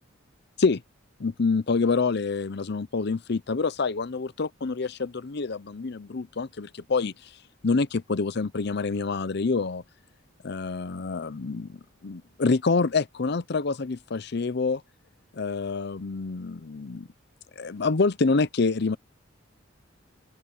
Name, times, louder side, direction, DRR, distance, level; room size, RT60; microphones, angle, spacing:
voice 1, 1.2-7.1 7.6-9.8 10.4-14.8 15.3-17.1 17.6-19.0, left 4 dB, 60° left, 0.7 m, -27 dB
open air
head